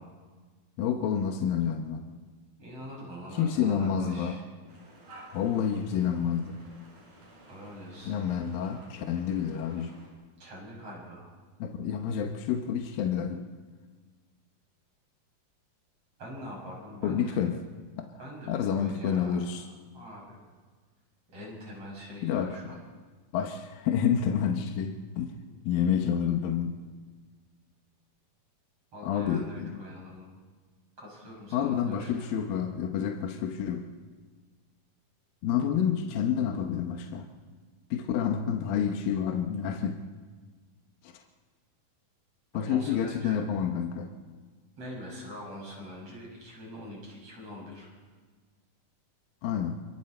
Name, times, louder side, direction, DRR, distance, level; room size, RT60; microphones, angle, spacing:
voice 1, 0.8-2.1 3.3-4.4 5.3-6.6 8.0-10.0 11.6-13.4 17.0-17.6 18.5-19.7 22.2-22.7 23.3-25.4 25.6-26.8 29.0-29.8 31.5-33.9 35.4-37.3 37.9-40.0 41.0-41.1 42.5-44.1 49.4-49.8, left 8 dB, 80° left, 4 dB, 2.9 m, -29 dB
voice 2, 2.6-4.4 7.5-8.2 10.4-11.3 16.2-17.4 18.2-19.4 19.9-20.4 21.3-22.8 28.9-30.3 31.0-32.3 42.7-43.4 44.8-47.9, equal, 45° right, -2 dB, 8.0 m, -43 dB
sound 1, 4.7-10.1, right 1 dB, 60° right, 8.2 m, -53 dB
28.0 x 26.0 x 4.4 m, 1.4 s
omnidirectional pair, 4.1 m